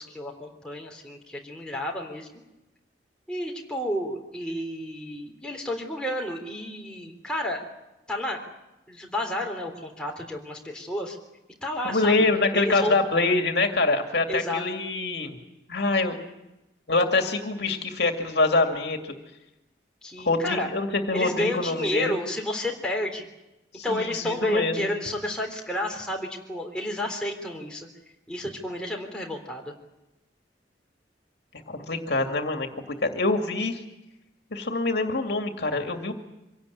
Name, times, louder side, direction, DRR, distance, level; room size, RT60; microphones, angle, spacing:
voice 1, 0.0-2.3 3.3-7.6 8.1-8.4 8.9-11.2 11.6-13.0 14.3-14.6 20.0-20.7 21.1-23.3 23.8-27.9 28.3-29.7, left 1 dB, 5° left, -1 dB, 3.6 m, -31 dB
voice 2, 11.8-15.4 15.7-16.2 16.9-19.1 20.2-22.2 23.7-24.9 31.7-33.8 34.5-36.1, left 3 dB, 65° left, 5 dB, 2.3 m, -25 dB
25.0 x 17.5 x 9.8 m, 0.96 s
head